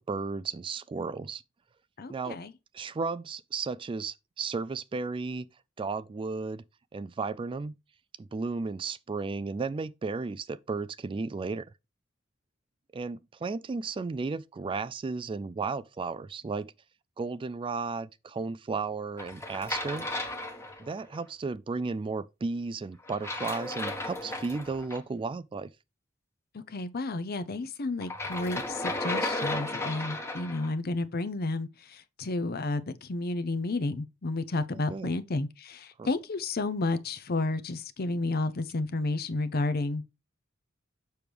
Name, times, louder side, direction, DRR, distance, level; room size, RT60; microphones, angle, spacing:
voice 1, 0.0-1.4 2.1-2.4 2.7-5.5 5.8-6.6 6.9-7.7 8.2-11.7 12.9-16.7 17.2-20.1 20.8-25.7 34.7-35.1 36.0-36.1, right 4 dB, 25° right, 0.3 m, -34 dB
voice 2, 2.0-2.5 26.5-40.1, left 2 dB, 50° left, 0.6 m, -31 dB
sound 1, 19.2-21.2 23.1-25.0 28.0-30.7, left 2 dB, 15° left, 1.1 m, -34 dB
6.9 x 6.1 x 3.4 m
head